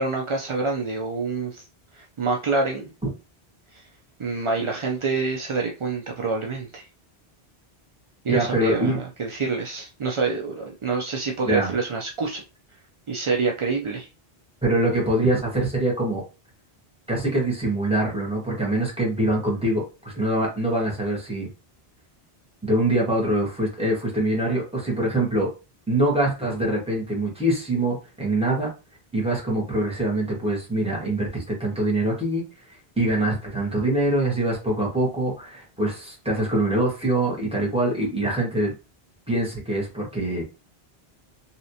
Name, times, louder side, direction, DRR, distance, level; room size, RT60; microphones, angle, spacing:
voice 1, 0.0-1.7 1.9-2.9 3.7-3.9 4.2-6.9 8.2-12.4 13.1-14.1, right 4 dB, 55° right, 0 dB, 0.3 m, -27 dB
voice 2, 8.3-9.0 11.5-11.7 14.6-16.2 17.1-21.5 22.6-25.5 25.9-28.7 29.1-38.7 39.3-40.4, right 1 dB, 5° right, -4 dB, 1.3 m, -24 dB
3.1 x 2.8 x 2.7 m, 0.31 s
omnidirectional pair, 1.1 m